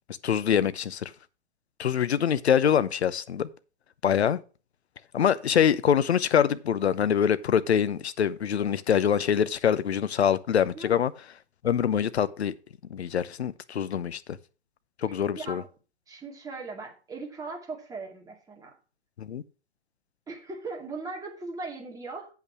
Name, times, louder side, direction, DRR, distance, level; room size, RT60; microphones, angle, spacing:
voice 1, 0.2-1.1 1.8-3.5 4.0-4.4 5.1-11.1 11.6-12.5 12.9-14.4 15.0-15.6 19.2-19.4, left 8 dB, 70° left, 0.8 m, -24 dB
voice 2, 15.4-15.7 16.1-18.7 20.3-22.3, right 3 dB, 10° right, 2.3 m, -38 dB
8.1 x 5.7 x 6.1 m
figure-of-eight pair, 115°, 34 cm